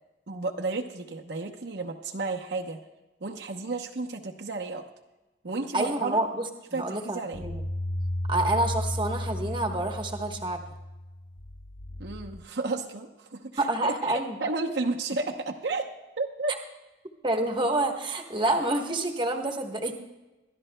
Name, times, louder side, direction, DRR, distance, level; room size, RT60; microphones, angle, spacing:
voice 1, 0.3-2.8 3.2-4.8 5.4-6.2 6.7-7.5 12.0-15.9 16.2-16.5, right 3 dB, 65° right, 1 dB, 0.8 m, -32 dB
voice 2, 5.7-6.5 6.8-7.6 8.3-10.6 13.6-14.3 17.2-20.0, right 2 dB, 25° right, 3 dB, 1.1 m, -28 dB
sound 1, 7.3-12.4, left 1 dB, 85° left, 1.0 m, -34 dB
24.0 x 12.5 x 2.2 m, 1.1 s
head